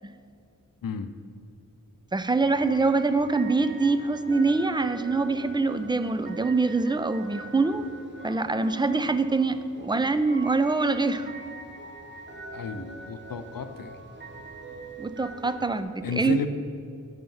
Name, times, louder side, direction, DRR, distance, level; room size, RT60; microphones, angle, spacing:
voice 1, 0.8-1.1 12.5-14.0 16.0-16.5, left 6 dB, 85° left, 9 dB, 0.6 m, -33 dB
voice 2, 2.1-7.9 8.2-11.3 15.0-16.4, right 3 dB, 15° right, 11 dB, 0.4 m, -24 dB
sound 1, 2.4-15.8, right 3 dB, 35° right, 1.2 m, -43 dB
9.1 x 5.8 x 5.5 m, 2.3 s
wide cardioid pair, 85°, 33 cm